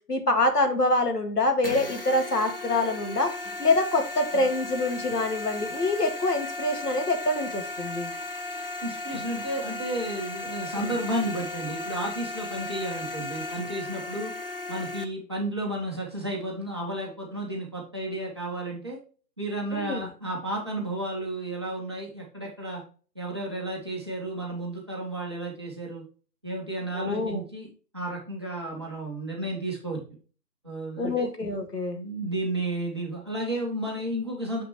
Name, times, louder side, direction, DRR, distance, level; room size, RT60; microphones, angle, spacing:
voice 1, 0.1-3.3 3.6-8.1 10.8-10.9 19.7-20.1 26.9-27.4 31.0-32.0, left 2 dB, 70° left, 5 dB, 2.0 m, -25 dB
sound 1, 1.6-15.0, left 2 dB, 35° left, 0.5 m, -36 dB
voice 2, 8.8-14.3 14.7-19.0 19.4-22.8 23.1-26.0 26.4-27.7 27.9-30.0 30.6-31.3 31.9-34.6, right 1 dB, 15° right, -3 dB, 0.8 m, -32 dB
6.6 x 5.8 x 3.0 m, 0.37 s
figure-of-eight pair, 145°, 50 cm